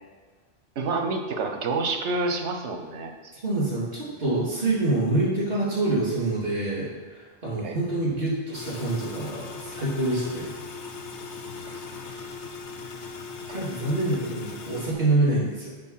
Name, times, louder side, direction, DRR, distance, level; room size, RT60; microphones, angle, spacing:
voice 1, 0.8-3.1 7.6-7.8 11.7-12.2, right 3 dB, 80° right, 5 dB, 1.1 m, -28 dB
voice 2, 3.4-10.5 12.8-12.9 13.5-15.7, right 2 dB, 50° right, -6 dB, 3.0 m, -26 dB
sound 1, 8.5-14.9, left 4 dB, 85° left, 1.1 m, -39 dB
6.9 x 4.7 x 5.6 m, 1.3 s
omnidirectional pair, 1.1 m